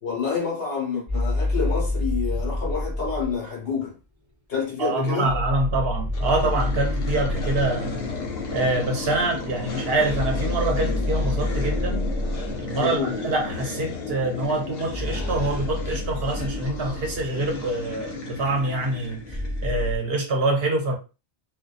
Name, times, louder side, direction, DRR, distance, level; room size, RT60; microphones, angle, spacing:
voice 1, 0.0-3.9 4.5-5.3 12.8-13.1 17.3-17.4, left 6 dB, 60° left, 1.1 m, -28 dB
sound 1, 1.1-3.4 5.2-7.8 10.1-12.6 14.9-17.5 19.3-20.0, left 1 dB, 20° right, 0.6 m, -28 dB
voice 2, 4.8-8.0 8.5-12.1 12.6-21.0, right 2 dB, 65° right, 0.8 m, -25 dB
sound 2, 6.1-20.0, left 3 dB, 80° left, 1.0 m, -33 dB
2.5 x 2.3 x 2.3 m
omnidirectional pair, 1.2 m